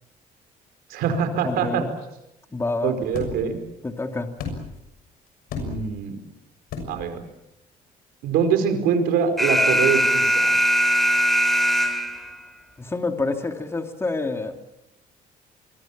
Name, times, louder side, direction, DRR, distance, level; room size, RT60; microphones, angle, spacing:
voice 1, 0.9-1.8 2.8-3.6 5.6-6.2 6.9-7.2 8.2-10.5, right 7 dB, 90° right, 7 dB, 4.8 m, -23 dB
voice 2, 1.4-1.9 2.5-2.9 3.8-4.3 12.8-14.5, left 3 dB, 15° left, 5 dB, 2.5 m, -27 dB
sound 1, 3.1-3.5 4.4-4.9 5.5-6.0 6.7-7.1, left 4 dB, 80° left, 6.7 m, -33 dB
Alarm, 9.4-12.4, equal, ahead, 3.0 m, -20 dB
27.5 x 23.0 x 7.3 m, 0.86 s
cardioid pair, 110°, 15 cm